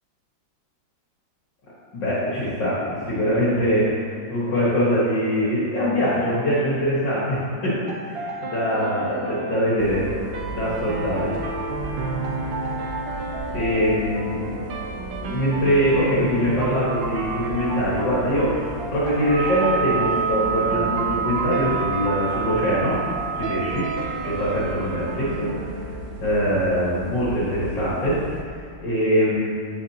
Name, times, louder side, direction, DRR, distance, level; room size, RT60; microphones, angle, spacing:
voice 1, 1.9-7.7 8.0-10.1 10.5-11.3 13.5-14.4 15.2-22.9 23.4-23.8 24.2-25.9 26.2-28.5 28.8-29.5, equal, 70° left, -8 dB, 2.3 m, -23 dB
sound 1, 7.9-26.8, right 2 dB, 80° right, 1.5 m, -32 dB
sound 2, 9.8-28.4, right 2 dB, 60° right, 0.9 m, -37 dB
sound 3, 19.3-25.4, right 7 dB, 85° left, 2.2 m, -28 dB
15.5 x 5.2 x 2.9 m, 2.3 s
omnidirectional pair, 2.0 m